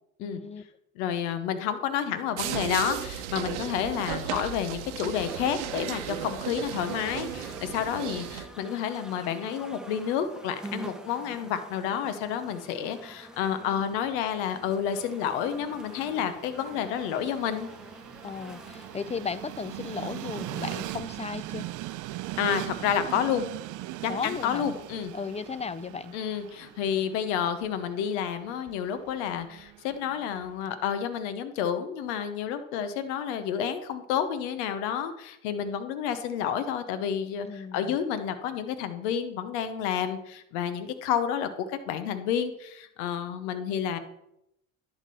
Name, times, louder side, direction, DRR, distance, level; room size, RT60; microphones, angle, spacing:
voice 1, 0.2-0.6 18.2-21.7 24.1-24.7 25.1-26.1 37.4-38.0, left 5 dB, 20° left, 16 dB, 0.5 m, -35 dB
voice 2, 1.0-17.7 22.4-23.5 24.0-25.1 26.1-44.0, left 8 dB, 80° left, 10 dB, 0.9 m, -30 dB
sound 1, 2.4-8.5, right 10 dB, 90° right, 0.8 m, -35 dB
sound 2, 5.1-21.3, right 1 dB, ahead, 1.0 m, -47 dB
Train, 14.7-30.8, right 16 dB, 60° right, 0.6 m, -41 dB
11.0 x 3.7 x 6.8 m, 0.80 s
supercardioid pair, 75°, 34 cm